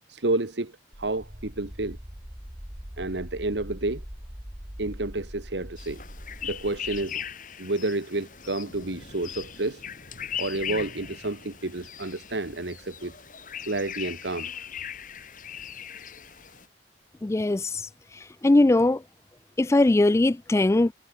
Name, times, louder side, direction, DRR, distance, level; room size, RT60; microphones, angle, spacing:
voice 1, 0.1-2.0 3.0-4.0 4.8-6.0 6.4-7.2 7.6-9.8 10.4-13.1 13.6-14.5, right 2 dB, 75° right, 1.6 m, -30 dB
sound 1, 0.9-7.1, equal, 20° right, 3.1 m, -42 dB
sound 2, 5.8-16.7, left 8 dB, 45° left, 6.2 m, -39 dB
voice 2, 17.2-17.8 18.4-19.0 19.6-20.9, left 2 dB, 15° left, 0.3 m, -20 dB
head